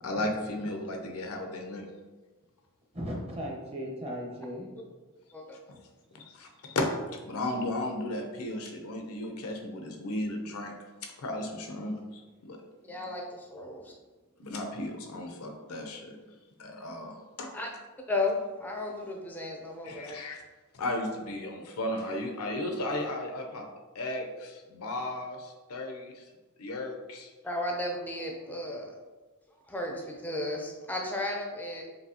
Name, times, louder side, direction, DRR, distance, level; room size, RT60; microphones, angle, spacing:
voice 1, 0.0-1.9 5.7-5.8 6.1-6.9 7.2-10.7 11.0-12.6 12.9-13.0 14.4-16.2 16.6-17.5 19.8-20.4 20.7-23.7 23.9-26.2 26.6-27.3, left 1 dB, 80° left, 3 dB, 0.6 m, -35 dB
voice 2, 2.9-4.7, equal, 30° right, -2 dB, 0.9 m, -37 dB
voice 3, 12.9-13.9 17.5-17.7 18.1-20.2 27.4-28.9 29.7-31.8, left 2 dB, 10° left, 0 dB, 0.5 m, -34 dB
5.2 x 2.7 x 2.8 m, 1.2 s
head